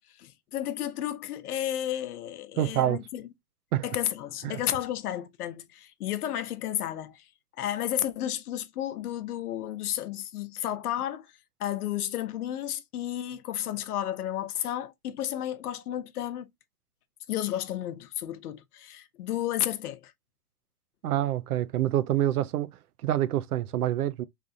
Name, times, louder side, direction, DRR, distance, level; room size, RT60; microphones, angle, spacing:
voice 1, 0.2-3.3 3.8-7.2 7.6-11.3 11.6-16.5 17.3-20.1, left 12 dB, 80° left, 0.8 m, -32 dB
voice 2, 2.6-3.0 3.7-3.9 4.4-4.6 21.0-22.7 23.0-24.2, right 13 dB, 80° right, 0.7 m, -26 dB
3.8 x 3.3 x 2.6 m
hypercardioid pair, 145°, 44 cm